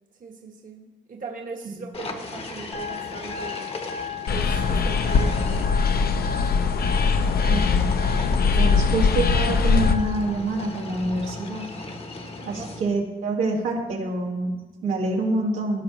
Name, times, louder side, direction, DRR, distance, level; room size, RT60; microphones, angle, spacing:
voice 1, 0.2-3.8 4.3-6.5 8.6-8.8 12.2-12.9, right 4 dB, 40° right, 2 dB, 1.1 m, -40 dB
sound 1, 1.9-5.7 6.7-13.0, left 3 dB, 30° left, 1.0 m, -38 dB
sound 2, 2.7-10.3, left 7 dB, 75° left, 2.0 m, -35 dB
sound 3, 4.3-9.9, left 5 dB, 50° left, 0.6 m, -21 dB
voice 2, 7.5-7.9 8.6-11.6 12.5-15.8, right 2 dB, 90° right, -3 dB, 2.0 m, -26 dB
16.0 x 5.9 x 3.1 m, 1.2 s
cardioid pair, 110°, 21 cm